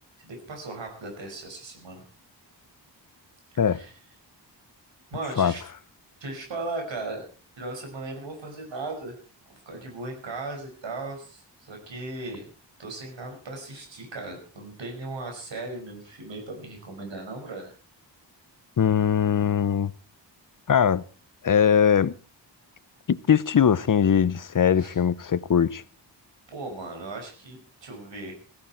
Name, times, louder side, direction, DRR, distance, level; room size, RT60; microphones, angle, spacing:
voice 1, 0.2-2.0 3.7-3.9 5.1-5.6 6.2-7.3 7.6-9.2 9.5-12.5 12.8-17.7 24.8-25.0 26.5-28.3, right 2 dB, 85° right, 5.8 m, -37 dB
voice 2, 18.8-19.9 20.7-21.0 21.4-22.1 23.1-25.8, left 8 dB, 45° left, 0.7 m, -21 dB
16.5 x 15.5 x 4.5 m
wide cardioid pair, 80°, 43 cm